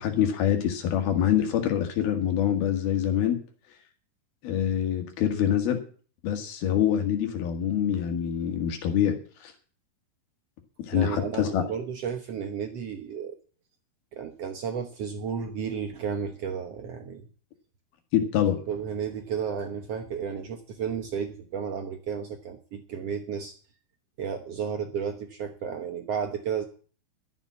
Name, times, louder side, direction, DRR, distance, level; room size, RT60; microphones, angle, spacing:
voice 1, 0.0-3.4 4.4-5.8 6.2-9.1 9.4-9.5 10.8-11.6 18.1-18.6, left 10 dB, 80° left, 5 dB, 3.8 m, -25 dB
voice 2, 10.9-13.4 14.1-17.2 18.7-23.5 24.2-26.6, right 7 dB, 75° right, 6 dB, 1.4 m, -33 dB
13.0 x 7.4 x 8.2 m, 0.41 s
omnidirectional pair, 4.3 m